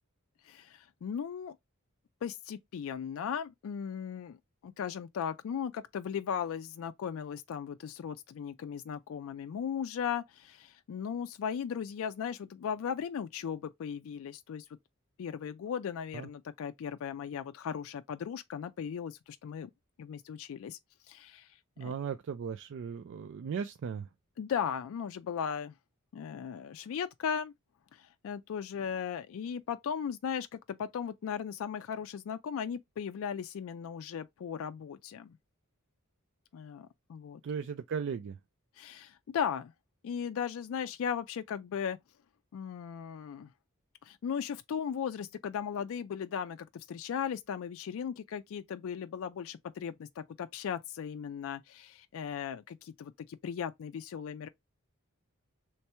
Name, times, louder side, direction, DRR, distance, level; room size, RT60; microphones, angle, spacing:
voice 1, 0.4-1.6 2.2-4.4 4.6-14.7 15.2-19.7 20.0-20.8 21.1-21.5 21.8-21.9 24.4-25.7 26.1-27.5 27.9-35.4 36.5-37.4 38.8-39.7 40.0-42.0 42.5-43.5 44.0-54.5, left 7 dB, 65° left, 0.3 m, -37 dB
voice 2, 21.8-24.1 37.4-38.4, right 6 dB, 55° right, 0.3 m, -37 dB
3.3 x 3.2 x 2.9 m
head